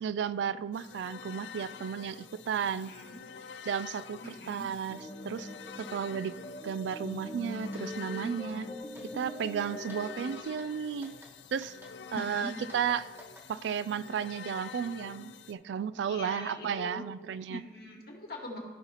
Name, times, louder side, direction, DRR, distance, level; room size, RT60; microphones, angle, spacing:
voice 1, 0.0-2.9 3.6-5.5 5.8-8.7 9.1-11.1 11.5-11.7 12.1-13.1 13.5-17.6, right 7 dB, 80° right, 16 dB, 0.3 m, -34 dB
sound 1, 0.7-15.5, left 7 dB, 80° left, 0.5 m, -47 dB
voice 2, 2.8-3.2 4.2-4.7 12.1-12.5 16.1-17.0 17.5-18.6, left 1 dB, 60° left, -1 dB, 1.8 m, -42 dB
sound 2, 4.9-10.4, left 1 dB, 15° left, 0.7 m, -42 dB
sound 3, 7.7-7.8 8.2-8.6 8.9-9.3 9.6-10.0 10.4-10.7 11.0-11.3 11.6-13.5, equal, 10° right, 1.2 m, -53 dB
15.0 x 5.6 x 3.0 m, 1.5 s
head